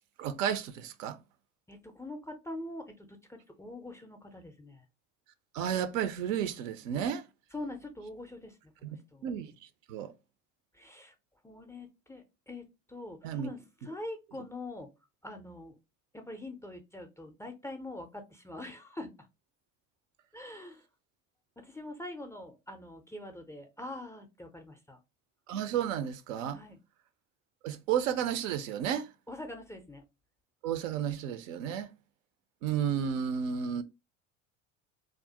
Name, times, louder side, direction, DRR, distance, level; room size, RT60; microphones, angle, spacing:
voice 1, 0.2-1.2 5.5-7.3 8.8-9.0 9.2-9.5 9.9-10.1 13.2-13.5 25.5-26.6 27.6-29.1 30.6-31.9 32.6-33.8, right 9 dB, 75° right, 0.5 m, -32 dB
voice 2, 1.7-4.9 7.5-9.2 10.7-11.1 11.4-14.9 15.2-15.8 16.1-19.3 20.3-20.9 21.6-25.0 26.5-26.8 29.3-30.0, left 2 dB, 10° left, 0.4 m, -44 dB
2.4 x 2.0 x 2.7 m
hypercardioid pair, 75°, 39 cm